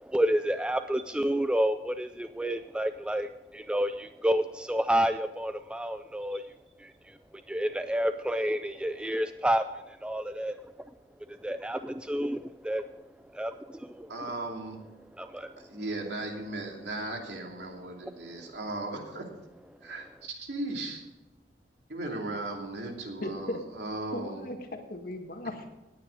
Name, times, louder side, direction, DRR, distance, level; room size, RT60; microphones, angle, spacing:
voice 1, 0.0-6.4 6.8-10.6 11.3-13.0 13.3-14.1 15.2-15.7, equal, 5° right, 9 dB, 0.3 m, -30 dB
voice 2, 14.1-14.8 15.6-19.3 19.8-21.1 21.9-24.5, right 2 dB, 75° right, 1 dB, 2.8 m, -37 dB
voice 3, 23.2-23.6 24.1-25.7, left 1 dB, 55° left, 4 dB, 1.7 m, -37 dB
18.5 x 9.4 x 4.0 m, 1.1 s
head